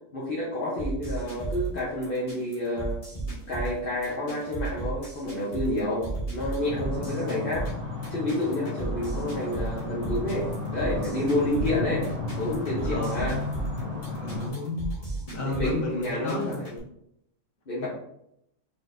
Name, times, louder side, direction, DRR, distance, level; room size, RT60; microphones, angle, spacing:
voice 1, 0.1-3.0 3.5-7.7 8.1-12.1 12.4-13.4 13.9-14.1 15.4-16.8 17.7-17.9, left 1 dB, 45° left, -6 dB, 1.0 m, -29 dB
sound 1, 0.8-16.8, right 3 dB, 30° left, 1.3 m, -35 dB
sound 2, 6.6-14.5, left 3 dB, 10° right, 1.6 m, -33 dB
voice 2, 7.0-7.5 11.4-11.7 12.8-13.3 14.2-16.6 17.8-17.9, left 2 dB, 80° left, -2 dB, 1.5 m, -33 dB
4.4 x 4.2 x 2.6 m, 0.77 s
omnidirectional pair, 1.4 m